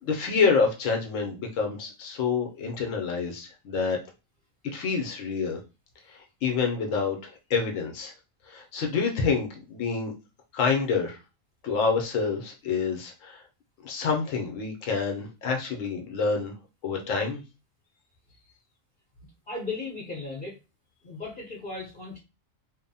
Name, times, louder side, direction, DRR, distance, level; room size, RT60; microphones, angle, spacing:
voice 1, 0.0-4.0 4.7-5.6 6.1-7.2 7.5-8.1 8.5-10.1 10.5-11.2 11.6-13.4 13.8-16.5 16.8-17.4, left 5 dB, 75° left, 2 dB, 0.9 m, -27 dB
voice 2, 19.5-20.5 21.0-22.2, left 3 dB, 45° left, -5 dB, 0.8 m, -36 dB
2.9 x 2.0 x 2.6 m, 0.29 s
omnidirectional pair, 1.4 m